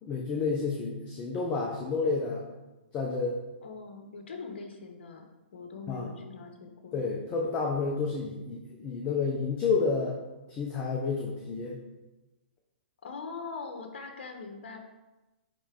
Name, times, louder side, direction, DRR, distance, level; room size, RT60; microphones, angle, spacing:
voice 1, 0.0-2.4 2.9-3.4 5.9-6.1 6.9-10.2 10.5-11.8, left 4 dB, 25° left, -1 dB, 0.8 m, -30 dB
voice 2, 3.6-5.2 5.5-7.0 13.0-14.8, left 4 dB, 65° left, 4 dB, 1.4 m, -42 dB
10.0 x 3.4 x 3.8 m, 1.1 s
hypercardioid pair, 145°, 6 cm